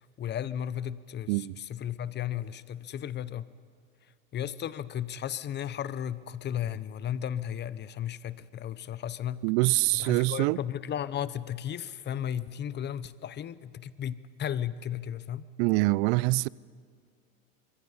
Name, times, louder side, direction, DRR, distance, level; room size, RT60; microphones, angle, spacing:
voice 1, 0.0-3.5 4.3-9.4 9.9-15.5, left 10 dB, 25° left, 0.7 m, -35 dB
voice 2, 1.3-1.6 9.4-10.6 15.6-16.5, right 23 dB, 55° right, 0.5 m, -25 dB
24.5 x 22.5 x 5.6 m
supercardioid pair, 115°, 42 cm